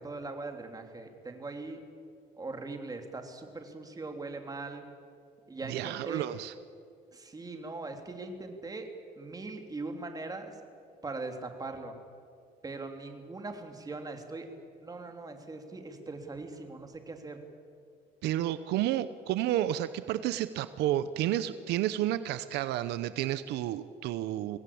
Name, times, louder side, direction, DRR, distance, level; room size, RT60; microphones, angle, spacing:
voice 1, 0.0-1.8 2.4-4.8 5.5-6.3 7.1-8.9 9.1-10.6 11.0-12.0 12.6-14.5 14.8-17.4, right 3 dB, 20° right, 4 dB, 3.1 m, -40 dB
voice 2, 5.7-6.5 18.2-24.6, right 13 dB, 85° right, 13 dB, 0.8 m, -31 dB
24.0 x 18.0 x 8.7 m, 2.2 s
cardioid pair, 110°, 17 cm